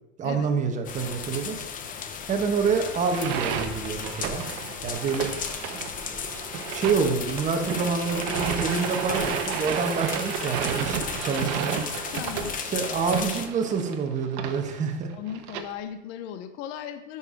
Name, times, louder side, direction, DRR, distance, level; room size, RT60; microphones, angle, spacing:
voice 1, 0.2-1.6 2.3-4.5 4.8-5.3 5.7-5.8 6.1-6.2 6.7-11.8 12.6-15.1, right 5 dB, 20° right, 3 dB, 1.2 m, -27 dB
sound 1, 0.8-13.5, left 7 dB, 25° left, 0.7 m, -35 dB
sound 2, 3.0-15.6, right 8 dB, 55° right, 1.1 m, -32 dB
voice 2, 12.1-12.6 15.1-17.2, left 9 dB, 55° left, 9 dB, 0.7 m, -37 dB
9.2 x 5.6 x 5.1 m, 0.95 s
supercardioid pair, 140°, 36 cm